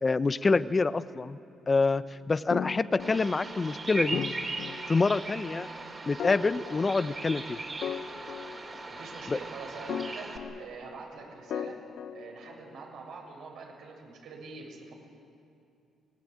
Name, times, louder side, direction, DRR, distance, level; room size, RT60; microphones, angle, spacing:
voice 1, 0.0-1.4 1.7-4.2 4.9-5.7 6.1-7.6 9.3-9.4, left 3 dB, 30° left, 14 dB, 0.8 m, -26 dB
sound 1, 2.5-3.7 4.1-5.3 6.2-7.4 7.8-9.2 9.9-11.1 11.5-12.9, left 8 dB, 70° left, 0.8 m, -38 dB
Bird vocalization bird call bird song, 3.0-10.4, right 3 dB, 30° right, 4.0 m, -38 dB
voice 2, 8.9-11.8 12.1-14.9, right 4 dB, 75° right, -1 dB, 7.0 m, -44 dB
25.5 x 19.5 x 8.8 m, 2.6 s
cardioid pair, 90°, 0 cm